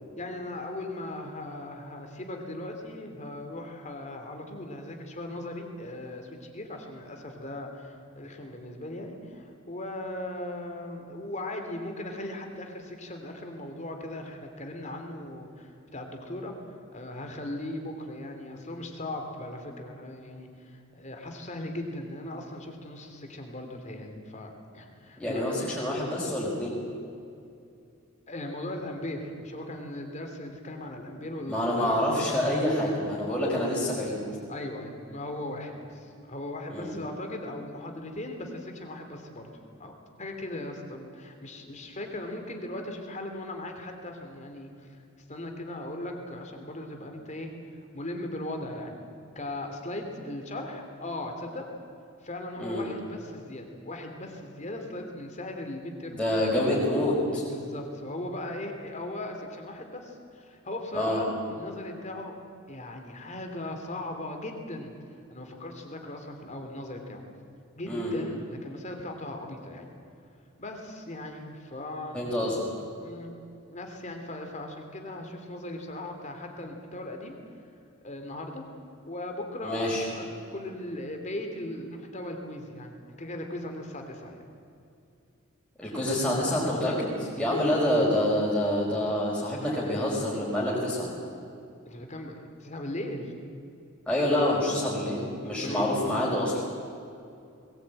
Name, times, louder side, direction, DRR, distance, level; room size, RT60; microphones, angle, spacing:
voice 1, 0.2-16.5 16.9-25.6 28.3-32.0 34.5-39.5 39.8-39.9 40.2-45.0 45.3-49.0 49.3-51.7 52.2-56.2 57.5-62.3 62.7-64.9 65.3-67.2 67.7-69.9 70.6-72.2 73.0-73.3 73.7-77.4 78.0-78.6 79.1-84.4 91.9-93.3 95.5-95.9, left 1 dB, 35° left, 4 dB, 3.0 m, -38 dB
voice 2, 25.2-26.8 31.5-34.2 36.7-36.9 52.6-52.8 56.1-57.4 60.9-61.2 67.8-68.1 72.1-72.6 79.6-80.0 85.8-91.1 94.1-96.6, left 1 dB, 5° left, -7 dB, 5.0 m, -27 dB
21.0 x 19.5 x 9.0 m, 2.6 s
head